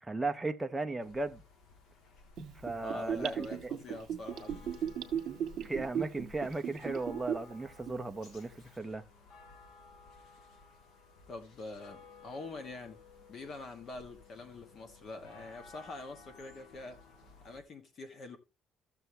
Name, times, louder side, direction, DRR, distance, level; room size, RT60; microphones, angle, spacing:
voice 1, 0.0-1.4 2.6-3.7 5.6-9.0, right 2 dB, 10° right, 0.6 m, -36 dB
sound 1, 1.0-17.6, left 3 dB, 80° left, 2.7 m, -56 dB
Gurgling / Bathtub (filling or washing), 2.4-7.5 7.9-8.0, right 9 dB, 55° right, 1.5 m, -36 dB
voice 2, 2.8-4.7 11.3-13.0 13.3-17.0 17.4-18.4, left 2 dB, 40° left, 1.3 m, -45 dB
14.5 x 6.8 x 3.2 m
cardioid pair, 165°, 0 cm